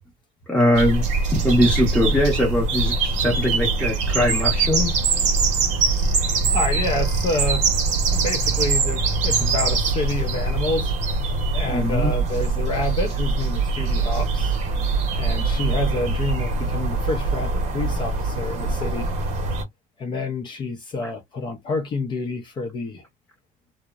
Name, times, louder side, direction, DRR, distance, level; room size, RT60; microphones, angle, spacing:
voice 1, 0.5-1.1 1.3-5.0 11.6-12.1 15.7-15.8 21.0-21.1, left 1 dB, 5° left, 0.8 m, -21 dB
sound 1, 0.7-19.6, right 4 dB, 50° right, 0.8 m, -23 dB
voice 2, 6.5-7.7 8.1-10.9 11.5-14.6 15.2-19.1 20.0-23.0, left 3 dB, 30° left, 0.6 m, -28 dB
2.9 x 2.0 x 2.3 m
cardioid pair, 150°, 16 cm